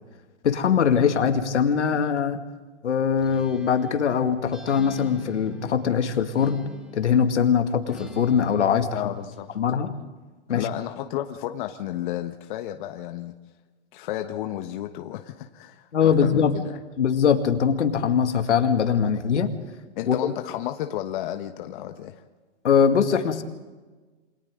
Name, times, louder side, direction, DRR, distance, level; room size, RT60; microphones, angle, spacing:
voice 1, 0.4-2.4 2.8-6.6 6.9-9.1 9.6-9.9 10.5-10.7 15.9-16.6 17.0-19.5 20.1-20.3 22.6-23.4, left 7 dB, 75° left, 7 dB, 2.4 m, -22 dB
Acoustic guitar, 3.2-7.3 7.9-9.5, left 4 dB, ahead, 3.0 m, -43 dB
voice 2, 8.9-9.5 10.5-13.3 13.9-16.8 20.0-22.2, left 12 dB, 45° left, 6 dB, 1.4 m, -32 dB
28.0 x 26.0 x 3.8 m, 1.3 s
hypercardioid pair, 135°, 35 cm